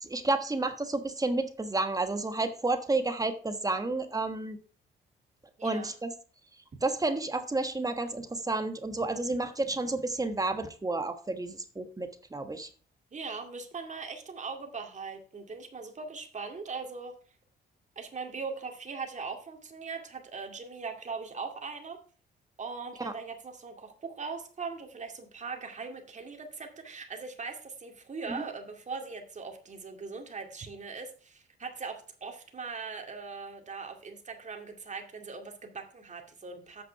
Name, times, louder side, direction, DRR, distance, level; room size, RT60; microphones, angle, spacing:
voice 1, 0.0-4.6 5.6-6.1 6.8-12.7 23.0-23.1, right 2 dB, 15° right, 7 dB, 1.3 m, -31 dB
voice 2, 5.6-5.9 13.1-17.2 18.0-22.0 22.6-36.8, right 4 dB, 35° right, 3 dB, 2.4 m, -40 dB
8.6 x 6.0 x 5.7 m, 0.41 s
cardioid pair, 90°, 20 cm